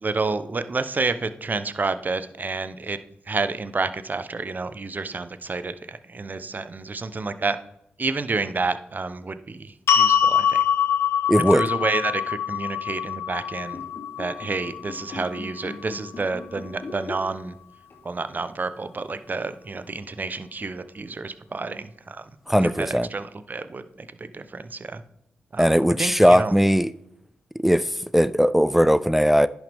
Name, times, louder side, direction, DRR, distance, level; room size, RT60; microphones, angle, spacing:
voice 1, 0.0-3.0 3.3-7.6 8.0-10.6 11.5-13.8 14.2-17.5 18.0-22.3 22.6-25.0 25.5-26.5, right 3 dB, 40° right, 0.7 m, -29 dB
sound 1, 9.9-16.1, left 8 dB, 80° left, 0.9 m, -24 dB
voice 2, 11.3-11.6 22.5-23.1 25.6-26.9 27.6-29.5, equal, 5° right, 0.3 m, -18 dB
sound 2, 13.6-17.6 17.9-18.1 19.0-19.1, left 3 dB, 60° left, 2.5 m, -39 dB
10.5 x 6.2 x 3.5 m
supercardioid pair, 40°, 4 cm